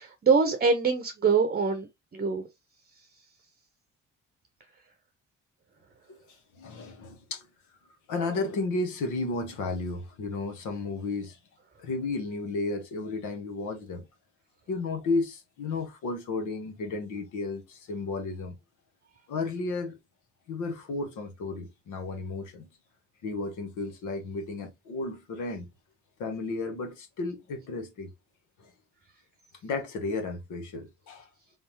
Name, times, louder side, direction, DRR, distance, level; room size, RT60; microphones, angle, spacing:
voice 1, 0.0-1.9 2.1-2.4, right 5 dB, 30° right, 0.7 m, -24 dB
voice 2, 6.5-7.5 8.1-11.4 11.8-14.0 14.7-18.5 19.3-20.0 20.5-22.7 23.2-25.7 26.2-28.1 28.6-28.7 29.6-31.3, left 3 dB, 80° left, 1.5 m, -33 dB
3.9 x 3.4 x 3.0 m
cardioid pair, 90°, 30 cm